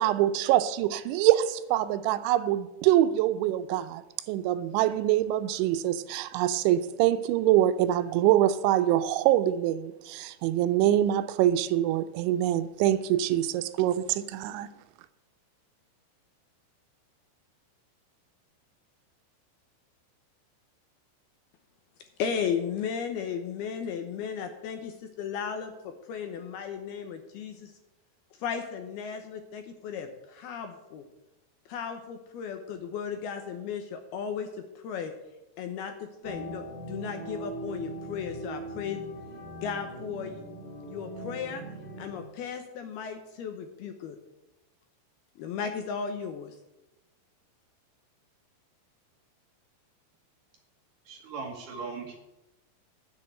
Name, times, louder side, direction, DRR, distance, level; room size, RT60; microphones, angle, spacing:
voice 1, 0.0-4.0 4.3-14.7, right 12 dB, 85° right, 12 dB, 3.0 m, -24 dB
voice 2, 22.2-27.7 28.4-31.0 31.7-35.1 35.6-39.0 39.6-40.4 40.9-41.6 42.0-44.2 45.4-46.6, left 7 dB, 75° left, 6 dB, 2.5 m, -35 dB
sound 1, 36.2-42.2, right 2 dB, 45° right, 0.5 m, -40 dB
voice 3, 51.1-52.1, right 4 dB, 60° right, 2 dB, 2.4 m, -38 dB
9.5 x 8.1 x 8.9 m, 0.95 s
omnidirectional pair, 5.4 m